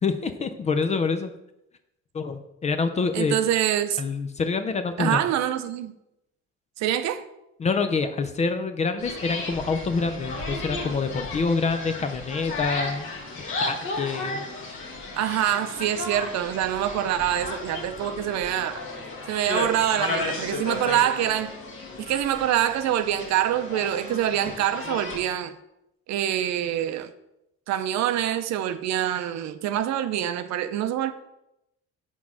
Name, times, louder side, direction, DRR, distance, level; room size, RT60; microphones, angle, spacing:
voice 1, 0.0-1.3 2.1-3.4 4.0-5.2 7.6-13.1 13.3-14.5, left 4 dB, 25° left, 0.3 m, -26 dB
voice 2, 3.1-4.0 5.0-5.9 6.8-7.2 15.2-18.8 19.3-21.6 22.0-25.5 26.1-27.1 27.7-31.1, right 11 dB, 70° right, 0.6 m, -25 dB
sound 1, 9.0-25.2, left 2 dB, 45° left, 1.3 m, -34 dB
sound 2, 20.2-24.9, left 6 dB, 65° left, 1.5 m, -50 dB
6.1 x 3.7 x 6.0 m
cardioid pair, 165°, 29 cm